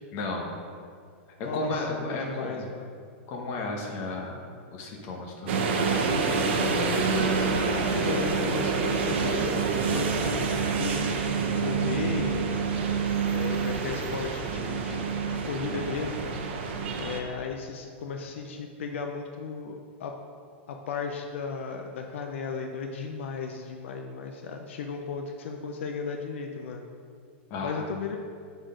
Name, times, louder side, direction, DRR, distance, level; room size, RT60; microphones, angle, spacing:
voice 1, 0.1-0.5 1.5-2.7 3.3-4.5 4.7-6.0 27.5-27.8, left 2 dB, 40° left, 0 dB, 1.1 m, -34 dB
voice 2, 1.4-2.9 6.5-12.5 13.3-15.0 15.2-16.3 17.0-20.1 20.7-26.8 27.6-28.2, left 5 dB, 80° left, 3 dB, 0.5 m, -35 dB
sound 1, 5.5-17.2, right 5 dB, 65° right, 0.8 m, -27 dB
6.3 x 4.1 x 5.0 m, 2.2 s
supercardioid pair, 155°, 7 cm